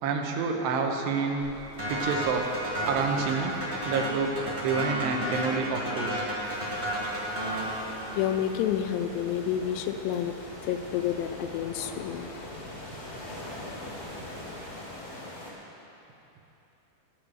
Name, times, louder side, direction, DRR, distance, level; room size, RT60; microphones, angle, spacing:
voice 1, 0.0-1.5 1.9-2.5 2.9-3.6 3.8-6.3, right 5 dB, 85° right, 2 dB, 3.0 m, -28 dB
sound 1, 1.4-14.7, right 2 dB, 60° right, 2.2 m, -48 dB
sound 2, 1.8-8.5, right 1 dB, 20° right, 1.1 m, -32 dB
sound 3, 6.4-15.5, left 1 dB, 70° left, 0.8 m, -43 dB
voice 2, 8.2-12.7, left 10 dB, 90° left, 8 dB, 2.8 m, -30 dB
13.5 x 6.0 x 7.9 m, 3.0 s
omnidirectional pair, 4.9 m